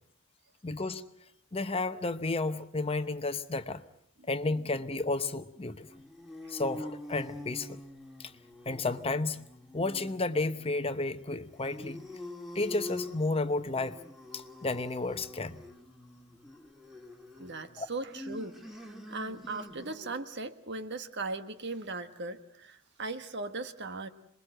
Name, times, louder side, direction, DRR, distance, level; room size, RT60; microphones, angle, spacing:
voice 1, 0.6-1.1 1.5-3.8 4.3-5.9 6.5-7.8 8.2-8.3 8.6-9.4 9.7-12.0 12.5-14.0 14.3-15.6 17.8-17.9, left 2 dB, 25° left, 1.0 m, -32 dB
sound 1, 5.8-20.3, left 1 dB, ahead, 2.4 m, -46 dB
voice 2, 17.4-24.1, right 3 dB, 55° right, 1.6 m, -38 dB
27.5 x 22.0 x 7.9 m
head